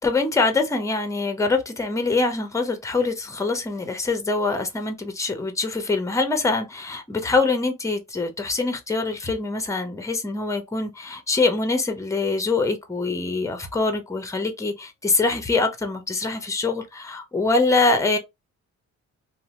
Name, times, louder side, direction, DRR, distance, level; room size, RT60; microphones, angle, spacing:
voice 1, 0.0-18.2, left 3 dB, 10° left, 0.6 m, -24 dB
2.7 x 2.1 x 2.8 m
cardioid pair, 90°, 30 cm